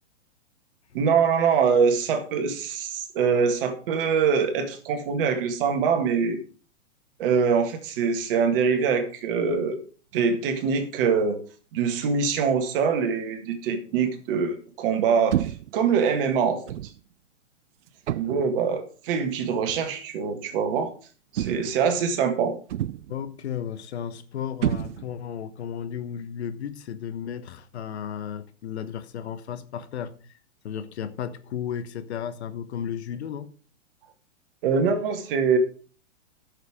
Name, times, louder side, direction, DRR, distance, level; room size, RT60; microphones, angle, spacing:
voice 1, 0.9-6.4 7.2-9.8 10.1-11.4 11.7-16.9 18.2-20.9 21.3-22.5 34.6-35.6, right 6 dB, 45° right, 1.9 m, -24 dB
sound 1, 15.3-15.8 16.7-17.0 18.1-18.6 19.7-19.9 21.4-21.9 22.7-23.2 24.6-25.3, right 12 dB, 70° right, 0.5 m, -29 dB
voice 2, 23.1-30.3 30.6-33.5, left 8 dB, 60° left, 1.1 m, -34 dB
11.5 x 6.5 x 5.0 m
hypercardioid pair, 120°, 37 cm